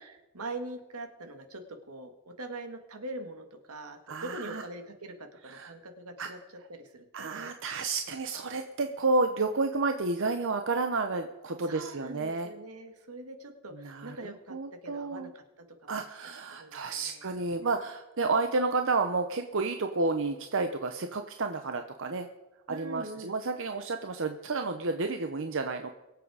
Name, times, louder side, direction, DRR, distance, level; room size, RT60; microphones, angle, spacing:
voice 1, 0.0-6.4 6.7-7.4 11.6-14.6 14.8-16.1 16.6-17.3 22.7-23.3, right 2 dB, 80° right, 7 dB, 1.8 m, -43 dB
voice 2, 4.1-4.6 5.5-5.7 6.2-6.3 7.1-12.5 13.7-15.3 15.9-22.3 22.7-25.9, right 3 dB, 60° right, 6 dB, 0.8 m, -31 dB
22.5 x 7.7 x 4.9 m, 1.0 s
head